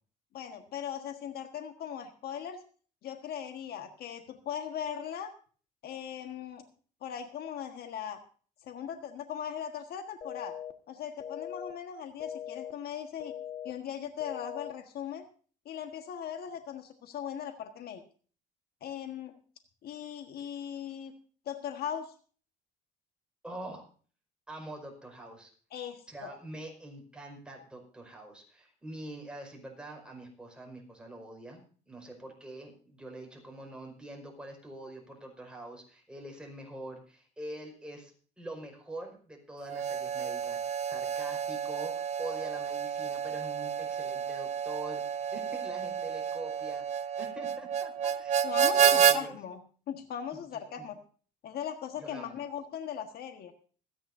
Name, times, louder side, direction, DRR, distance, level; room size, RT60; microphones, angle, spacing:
voice 1, 0.3-2.6 3.0-5.3 5.8-6.6 7.0-8.2 8.6-10.5 10.9-13.3 13.6-15.2 15.6-18.0 18.8-19.4 19.8-21.1 21.4-22.1 25.7-26.3 48.4-49.6 49.9-51.0 51.4-53.5, left 8 dB, 65° left, 7 dB, 1.5 m, -39 dB
sound 1, 10.2-10.7 11.2-11.7 12.2-12.7 13.2-13.7 14.2-14.7, left 10 dB, 40° left, 1.5 m, -40 dB
voice 2, 23.4-23.9 24.5-25.5 26.1-38.1 38.4-49.4 50.5-50.9 52.0-52.4, right 1 dB, 5° right, 0 dB, 5.3 m, -45 dB
Harmonica, 39.7-49.2, right 8 dB, 45° right, 1.0 m, -30 dB
26.5 x 9.6 x 2.7 m, 0.41 s
cardioid pair, 110°, 17 cm